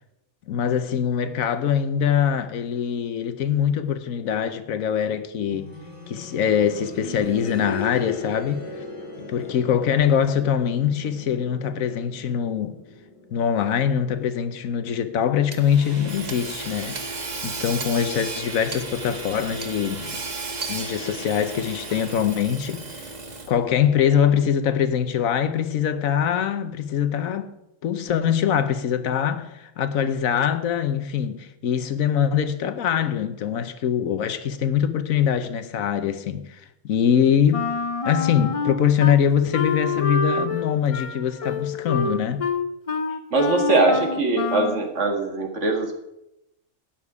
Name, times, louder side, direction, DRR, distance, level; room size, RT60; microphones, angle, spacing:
voice 1, 0.5-5.7 6.1-8.7 9.2-12.8 13.3-20.2 20.7-23.1 23.5-27.5 27.8-37.7 38.0-42.5, left 8 dB, 80° left, 1.2 m, -23 dB
sound 1, 5.5-16.3 17.6-17.7, left 3 dB, 20° left, 2.1 m, -38 dB
Hammer / Sawing, 15.5-23.7, right 3 dB, 35° right, 1.1 m, -34 dB
Wind instrument woodwind instrument, 37.5-39.2 39.5-44.9, left 4 dB, 45° left, 0.4 m, -27 dB
voice 2, 43.3-46.0, right 2 dB, 60° right, 2.0 m, -21 dB
12.0 x 8.9 x 4.8 m
omnidirectional pair, 1.4 m